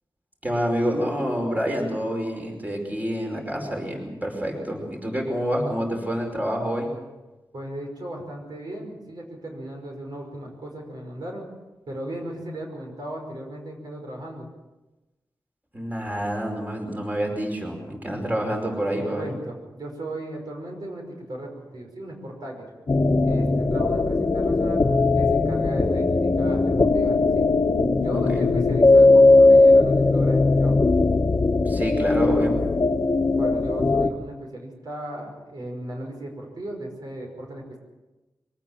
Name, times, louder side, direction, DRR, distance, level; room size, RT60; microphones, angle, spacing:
voice 1, 0.4-6.9 15.7-19.3 28.1-28.4 31.7-32.6, equal, 20° right, 1 dB, 5.2 m, -27 dB
voice 2, 7.5-11.4 11.9-14.5 18.9-22.7 23.2-24.9 25.1-27.5 28.0-30.8 33.3-37.8, right 1 dB, 60° right, 1 dB, 5.6 m, -36 dB
sound 1, 22.9-34.1, left 3 dB, 40° left, 1.4 m, -19 dB
24.0 x 18.5 x 7.3 m, 1.1 s
wide cardioid pair, 110°, 8 cm